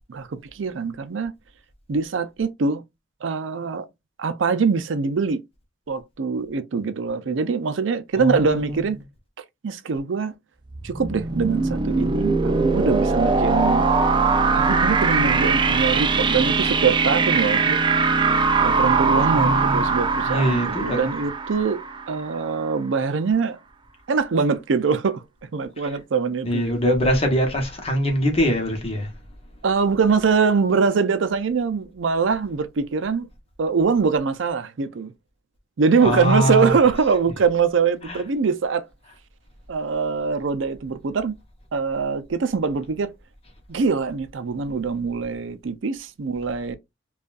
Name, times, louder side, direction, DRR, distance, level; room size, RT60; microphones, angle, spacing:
voice 1, 0.1-1.3 1.9-2.8 3.2-3.9 4.2-5.4 5.9-9.0 9.6-10.3 10.8-13.9 14.5-17.8 18.6-21.8 22.1-23.6 24.1-25.2 25.5-26.6 29.6-33.3 33.6-35.1 35.8-38.8 39.7-41.3 41.7-43.1 43.7-46.8, right 5 dB, 80° right, 0.5 m, -23 dB
voice 2, 8.2-8.8 19.3-19.8 20.2-21.1 25.8-25.9 26.4-29.1 36.0-36.8 38.1-38.2, equal, 30° left, 1.1 m, -23 dB
sound 1, 10.7-22.4, right 4 dB, 25° right, 0.4 m, -21 dB
5.2 x 2.4 x 2.4 m
head